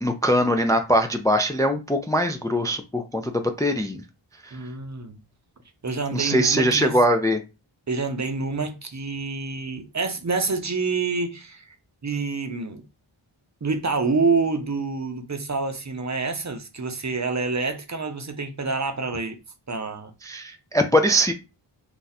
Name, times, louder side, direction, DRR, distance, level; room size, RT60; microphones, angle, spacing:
voice 1, 0.0-4.0 4.4-4.6 6.1-7.4 20.2-21.3, equal, 10° left, 0.4 m, -22 dB
voice 2, 4.5-5.2 5.8-7.0 7.9-11.8 12.0-12.8 13.6-19.4 19.7-20.1, right 4 dB, 35° right, 0.7 m, -27 dB
2.7 x 2.3 x 4.0 m
cardioid pair, 40°, 48 cm